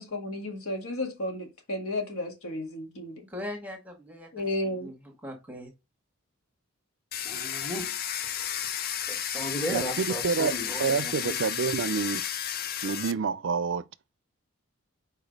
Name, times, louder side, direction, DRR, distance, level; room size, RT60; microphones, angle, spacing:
voice 1, 0.0-3.3 4.3-4.9, left 1 dB, 90° left, 1.8 m, -33 dB
voice 2, 3.3-5.7, left 1 dB, 10° right, 1.3 m, -41 dB
Domestic sounds home sounds, 7.1-13.1, left 9 dB, 45° left, 0.4 m, -32 dB
voice 3, 7.2-7.9 9.1-11.4, right 1 dB, 10° left, 1.3 m, -35 dB
voice 4, 9.7-10.5 10.8-12.2 12.8-13.8, right 5 dB, 60° right, 0.4 m, -28 dB
4.9 x 4.5 x 5.1 m
head